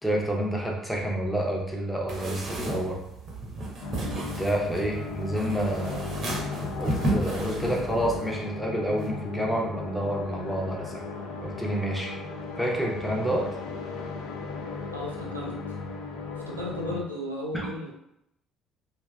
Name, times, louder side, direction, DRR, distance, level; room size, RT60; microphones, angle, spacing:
voice 1, 0.0-3.0 4.1-6.1 6.8-11.0 11.4-12.1 12.6-13.5 17.5-17.7, right 1 dB, ahead, -2 dB, 0.6 m, -29 dB
sound 1, 2.1-8.2, right 2 dB, 45° right, 0.6 m, -33 dB
sound 2, 3.8-17.0, left 4 dB, 65° left, 0.4 m, -36 dB
sound 3, 5.6-8.6 9.0-9.6, equal, 85° left, 1.2 m, -48 dB
voice 2, 14.9-15.8 16.3-17.9, left 1 dB, 85° right, -3 dB, 0.4 m, -35 dB
2.6 x 2.2 x 2.2 m, 0.83 s
figure-of-eight pair, 55°, 0 cm